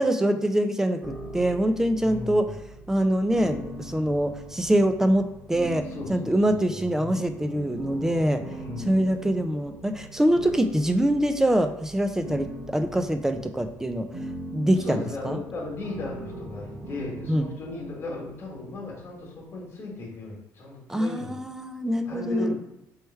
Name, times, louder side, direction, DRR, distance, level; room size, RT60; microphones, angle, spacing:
voice 1, 0.0-2.5 2.9-8.4 8.8-14.1 14.5-15.4 17.3-17.5 20.9-22.5, right 1 dB, 10° right, 8 dB, 0.3 m, -24 dB
sound 1, 1.0-20.0, right 1 dB, 35° right, 1.3 m, -41 dB
voice 2, 2.0-2.5 5.9-7.3 8.4-9.0 14.8-21.4 22.1-22.5, left 3 dB, 40° left, -2 dB, 1.3 m, -36 dB
3.2 x 3.1 x 4.5 m, 0.84 s
cardioid pair, 120°, 6 cm